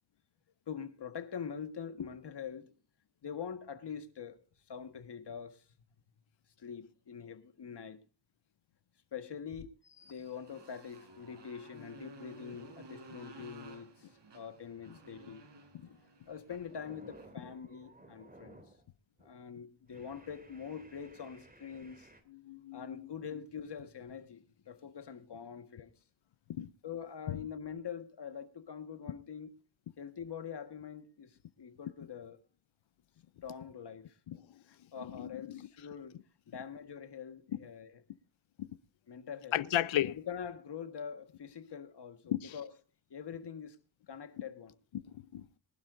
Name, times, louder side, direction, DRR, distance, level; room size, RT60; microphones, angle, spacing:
voice 1, 0.7-2.7 3.2-4.4 4.7-5.6 6.6-8.0 9.1-15.5 16.3-18.6 19.2-22.1 22.7-25.9 26.8-29.6 30.0-32.4 33.4-34.2 34.7-36.2 36.5-38.0 39.1-39.7 40.1-42.7 43.1-43.8 44.1-44.7, left 7 dB, 55° left, 1.6 m, -44 dB
Motorcycle, 10.0-17.4, right 3 dB, 60° right, 4.5 m, -55 dB
sound 1, 15.7-16.1 16.4-18.9 19.2-19.4 19.9-22.2, right 1 dB, 20° right, 2.8 m, -57 dB
voice 2, 22.3-23.1 26.5-26.7 27.3-27.4 34.3-34.4 35.0-35.6 38.6-38.7 39.5-40.2 42.3-42.5 44.9-45.0 45.3-45.6, left 12 dB, 70° left, 0.7 m, -35 dB
23.0 x 12.0 x 2.6 m
cardioid pair, 95°, 48 cm